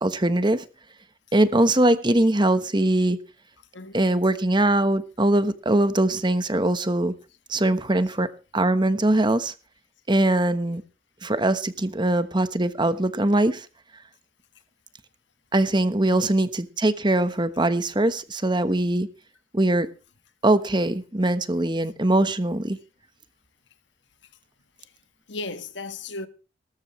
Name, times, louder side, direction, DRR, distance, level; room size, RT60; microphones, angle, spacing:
voice 1, 0.0-0.7 1.3-3.2 3.9-7.1 7.5-8.3 8.5-9.5 10.1-10.8 11.2-13.7 15.5-19.1 19.5-19.9 20.4-22.8, right 1 dB, 25° right, 1.1 m, -22 dB
voice 2, 3.7-4.2 8.0-8.1 16.1-16.4 24.8-24.9 25.3-26.3, left 3 dB, 65° left, 1.5 m, -36 dB
19.5 x 13.5 x 3.2 m
head